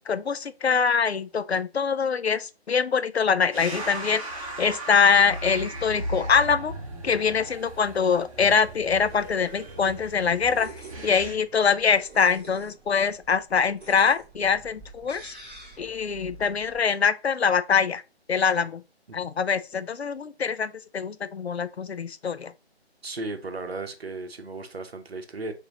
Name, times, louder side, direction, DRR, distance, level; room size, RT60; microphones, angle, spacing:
voice 1, 0.1-6.7 7.0-10.7 11.0-15.3 15.8-18.0 18.3-18.8 19.1-22.5, left 6 dB, 75° left, 0.5 m, -24 dB
sound 1, 3.5-11.3, right 1 dB, 30° right, 1.1 m, -37 dB
sound 2, 8.6-16.8, right 3 dB, 5° right, 1.6 m, -48 dB
voice 2, 23.0-25.5, right 2 dB, 65° right, 0.9 m, -35 dB
6.2 x 2.8 x 2.8 m
figure-of-eight pair, 150°, 33 cm